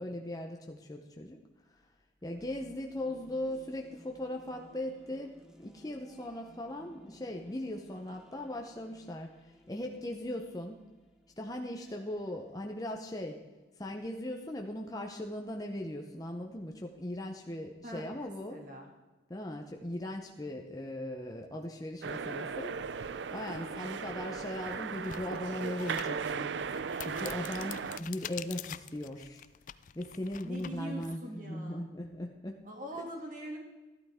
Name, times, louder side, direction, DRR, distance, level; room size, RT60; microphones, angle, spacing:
voice 1, 0.0-1.4 2.2-10.8 11.4-13.4 13.8-18.6 19.3-22.7 23.1-29.4 29.9-32.6, left 1 dB, 20° left, 2 dB, 0.8 m, -39 dB
sound 1, 2.2-14.0, equal, 5° right, 0.9 m, -60 dB
voice 2, 17.8-18.9 23.5-23.8 30.4-31.8 32.6-33.6, right 1 dB, 45° right, 1 dB, 2.5 m, -43 dB
sound 2, 22.0-28.0, right 6 dB, 75° right, 0.5 m, -37 dB
sound 3, 23.9-24.0 24.5-31.2, left 11 dB, 45° left, 0.4 m, -46 dB
13.5 x 12.5 x 3.6 m, 1.2 s
head